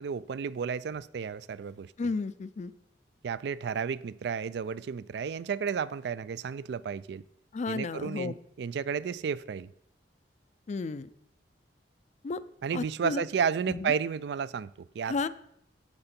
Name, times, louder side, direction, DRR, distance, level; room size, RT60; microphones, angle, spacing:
voice 1, 0.0-1.9 3.2-7.2 7.7-9.7 12.6-15.3, right 6 dB, 70° right, 0.4 m, -32 dB
voice 2, 2.0-2.7 7.5-8.3 10.7-11.1 12.2-12.4 12.7-13.2 13.7-13.9 15.1-15.3, left 4 dB, 40° left, 0.4 m, -32 dB
8.8 x 7.9 x 4.3 m
head